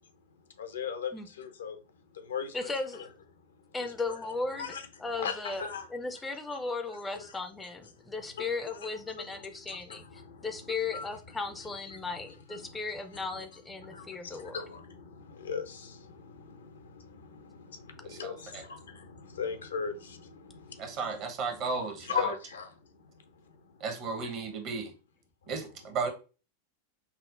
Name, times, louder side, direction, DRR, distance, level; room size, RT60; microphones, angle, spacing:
voice 1, 0.0-3.1 3.3-4.2 4.5-4.9 5.2-5.9 7.1-7.3 8.0-11.2 11.6-13.4 13.7-23.8 24.2-24.3 25.4-25.7, left 6 dB, 65° left, 0.5 m, -40 dB
voice 2, 2.5-3.1 3.7-4.8 5.0-5.6 5.9-14.6, left 3 dB, 10° left, 0.4 m, -36 dB
voice 3, 18.0-18.6 20.8-22.1 23.8-24.9 25.5-26.1, right 4 dB, 40° right, 0.8 m, -34 dB
5.5 x 2.0 x 2.4 m
figure-of-eight pair, 90°, 0 cm